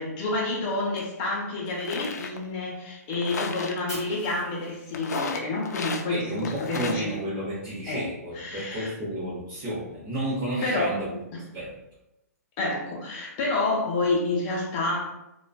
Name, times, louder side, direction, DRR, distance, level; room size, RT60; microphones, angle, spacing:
voice 1, 0.0-7.1 7.9-8.1 8.3-8.9 10.6-11.0 12.6-15.1, left 2 dB, 35° left, -2 dB, 0.6 m, -29 dB
sound 1, 1.0-1.1 1.6-2.4 3.1-3.8 4.9-6.1 6.4-7.0, left 4 dB, 75° left, 0.3 m, -33 dB
Fire, 3.9-5.9, equal, 10° right, 1.1 m, -44 dB
voice 2, 6.1-11.2 11.5-11.7, right 1 dB, 35° right, -7 dB, 0.8 m, -31 dB
2.4 x 2.2 x 2.3 m, 0.90 s
hypercardioid pair, 130°, 9 cm